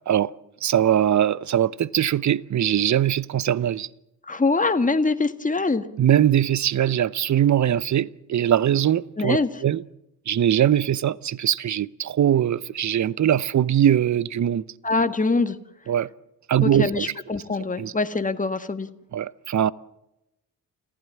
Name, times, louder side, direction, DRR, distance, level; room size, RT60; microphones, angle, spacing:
voice 1, 0.6-3.9 6.0-9.8 10.3-14.7 15.9-16.1 16.5-17.1 17.8-17.9 19.1-19.7, right 10 dB, 40° right, 0.8 m, -21 dB
voice 2, 4.3-5.8 9.2-9.5 14.8-15.6 16.6-18.9, left 3 dB, 15° left, 1.7 m, -23 dB
29.0 x 15.0 x 7.4 m
hypercardioid pair, 40°, 45 cm